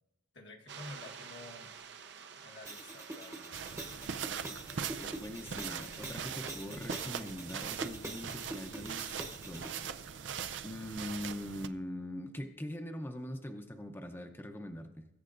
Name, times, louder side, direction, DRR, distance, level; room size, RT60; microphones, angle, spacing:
voice 1, 0.3-4.0, left 2 dB, 75° left, 0 dB, 1.4 m, -52 dB
sound 1, 0.7-6.2, right 6 dB, 70° right, 0.8 m, -51 dB
sound 2, 2.6-9.8, right 2 dB, 15° right, 1.0 m, -45 dB
sound 3, 3.5-11.7, right 7 dB, 90° right, 0.5 m, -41 dB
voice 2, 4.9-9.7 10.6-15.1, left 1 dB, 10° left, 4 dB, 0.7 m, -42 dB
21.0 x 8.7 x 2.6 m, 0.98 s
head